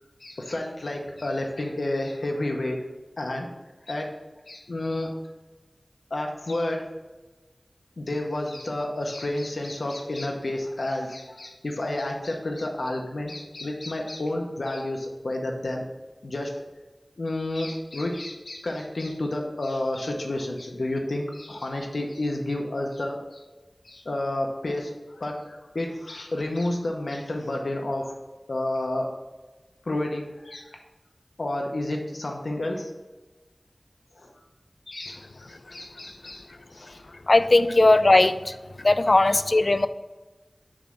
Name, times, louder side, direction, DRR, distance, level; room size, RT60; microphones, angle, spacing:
voice 1, 0.2-2.9 3.2-3.5 3.9-4.1 4.5-5.1 6.1-6.8 8.0-15.8 16.2-16.6 17.2-23.4 23.8-28.2 28.5-29.1 29.8-30.7 31.4-32.9 34.2-34.3 34.9-37.1 39.2-39.4, left 1 dB, 85° left, 1 dB, 0.8 m, -30 dB
voice 2, 37.3-38.5 38.8-39.9, left 2 dB, 60° left, 12 dB, 0.4 m, -18 dB
7.4 x 3.2 x 5.9 m, 1.2 s
wide cardioid pair, 45°, 0 cm